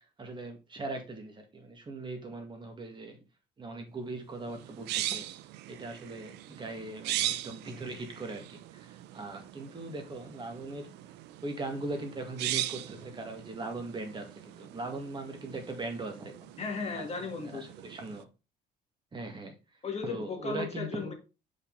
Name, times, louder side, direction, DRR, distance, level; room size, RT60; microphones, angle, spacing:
voice 1, 0.2-3.2 3.6-5.3 5.7-10.9 11.4-16.3 16.9-17.0 17.4-18.3 19.1-19.6 20.0-21.1, right 2 dB, 25° right, 1.9 m, -40 dB
sound 1, 4.4-18.2, right 14 dB, 85° right, 0.6 m, -40 dB
voice 2, 16.6-17.7 19.8-21.1, left 4 dB, 40° left, 1.9 m, -36 dB
6.5 x 5.6 x 3.9 m
cardioid pair, 110°, 17 cm